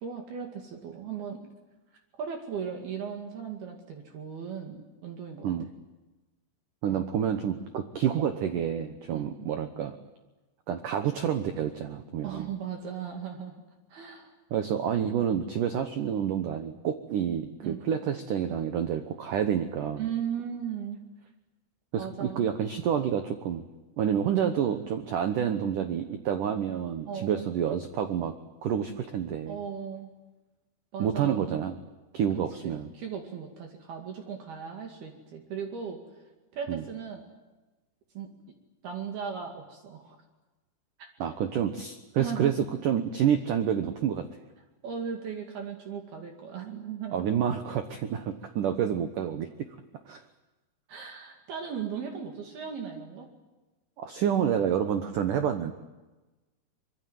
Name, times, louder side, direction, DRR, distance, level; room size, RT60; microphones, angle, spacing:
voice 1, 0.0-1.5 2.2-5.5 6.9-7.0 9.1-9.3 12.2-13.6 13.9-14.3 17.6-17.8 20.0-21.0 22.0-22.5 27.1-27.4 29.5-30.1 30.9-31.7 32.6-36.0 36.5-37.3 38.2-38.6 38.8-40.2 42.2-42.5 44.8-47.3 50.9-53.3, right 7 dB, 60° right, 3 dB, 4.0 m, -37 dB
voice 2, 6.8-10.0 10.7-12.5 14.5-20.1 21.9-23.6 24.0-28.3 28.6-29.6 31.0-31.7 32.1-32.9 36.7-36.8 41.2-42.5 42.8-44.2 47.1-49.5 50.1-50.2 54.0-55.7, right 8 dB, 75° right, 8 dB, 1.9 m, -28 dB
25.0 x 23.0 x 9.4 m, 1.1 s
omnidirectional pair, 5.5 m